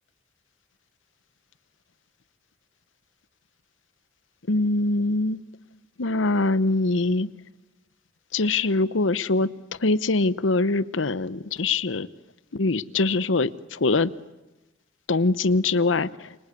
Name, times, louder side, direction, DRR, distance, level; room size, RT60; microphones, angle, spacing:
voice 1, 4.5-5.4 6.0-7.3 8.3-9.5 9.8-12.1 12.5-14.1 15.1-16.4, left 3 dB, 90° left, 16 dB, 0.9 m, -23 dB
29.0 x 24.0 x 8.3 m, 1.0 s
head